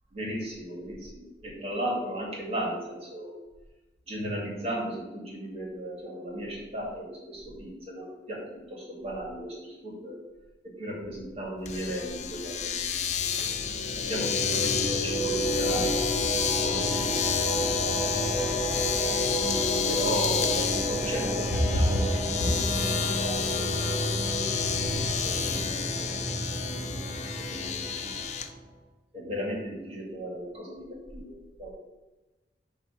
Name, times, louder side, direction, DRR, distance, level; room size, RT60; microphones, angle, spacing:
voice 1, 0.1-3.3 4.1-10.2 10.6-13.5 14.0-16.1 16.6-17.7 19.9-23.8 24.9-28.3 29.1-31.7, equal, 35° right, -3 dB, 2.6 m, -35 dB
Domestic sounds home sounds, 11.7-28.5, left 8 dB, 40° left, 0.6 m, -31 dB
sound 1, 13.2-28.6, right 1 dB, 10° right, 2.0 m, -31 dB
9.0 x 3.7 x 6.9 m, 1.1 s
head